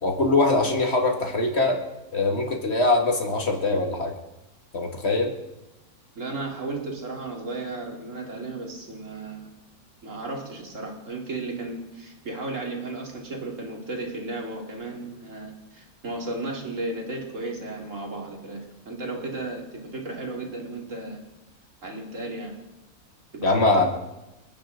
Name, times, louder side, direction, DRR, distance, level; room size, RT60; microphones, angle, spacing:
voice 1, 0.0-1.8 2.1-4.1 4.7-5.3 23.4-23.9, left 2 dB, 45° left, 1 dB, 2.3 m, -22 dB
voice 2, 6.2-9.5 10.0-18.6 18.9-21.2 21.8-22.5 23.3-23.9, right 2 dB, 55° right, 0 dB, 2.8 m, -34 dB
28.0 x 10.0 x 3.8 m, 0.97 s
omnidirectional pair, 1.6 m